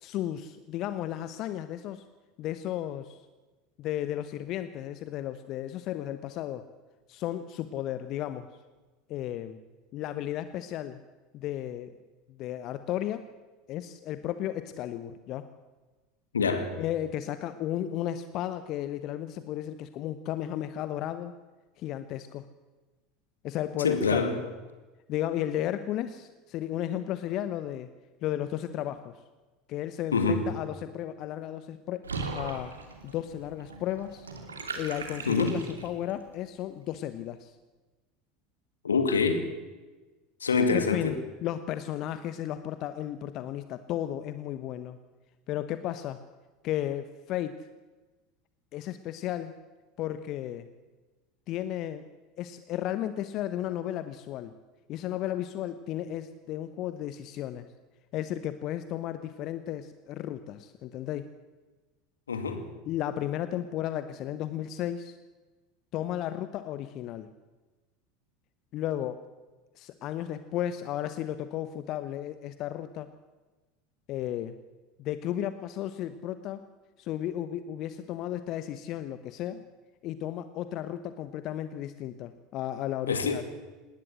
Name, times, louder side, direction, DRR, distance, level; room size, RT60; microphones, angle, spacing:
voice 1, 0.0-2.0 2.4-3.2 3.8-6.6 7.1-8.5 9.1-9.6 9.9-11.0 11.3-11.9 12.4-13.2 13.7-15.5 16.8-21.3 21.8-22.5 23.4-24.4 25.1-27.9 28.2-29.2 29.7-32.0 32.3-32.8 33.0-34.3 34.8-37.5 40.7-45.0 45.5-46.2 46.6-47.6 48.7-49.5 50.0-50.7 51.5-52.0 52.4-54.5 54.9-57.7 58.1-61.3 62.9-65.2 65.9-67.3 68.7-69.2 69.8-73.1 74.1-74.6 75.0-76.6 77.0-79.6 80.0-83.4, left 12 dB, 45° left, 12 dB, 0.9 m, -34 dB
voice 2, 16.3-16.7 23.8-24.5 30.1-30.5 35.3-35.6 38.8-39.5 40.4-41.1 62.3-62.7 83.1-83.4, left 4 dB, 80° left, 8 dB, 2.2 m, -26 dB
Water / Bathtub (filling or washing), 32.0-36.1, right 4 dB, 80° right, 2.8 m, -39 dB
19.5 x 19.0 x 7.6 m, 1.2 s
figure-of-eight pair, 75°, 0 cm